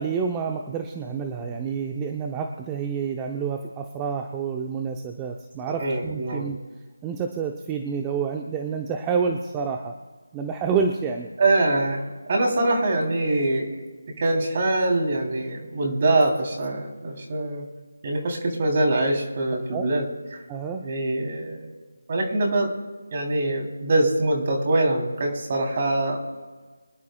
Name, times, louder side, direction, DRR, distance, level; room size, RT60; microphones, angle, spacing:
voice 1, 0.0-6.6 7.0-9.9 10.3-11.3 19.7-19.8 20.5-20.9, right 6 dB, 15° right, 4 dB, 0.7 m, -28 dB
voice 2, 5.8-6.4 11.4-13.8 14.2-17.6 18.0-20.0 20.3-20.4 20.8-21.7 22.1-22.7 23.1-26.3, right 2 dB, 40° right, 1 dB, 3.3 m, -24 dB
25.0 x 11.0 x 2.3 m, 1.4 s
figure-of-eight pair, 165°, 0 cm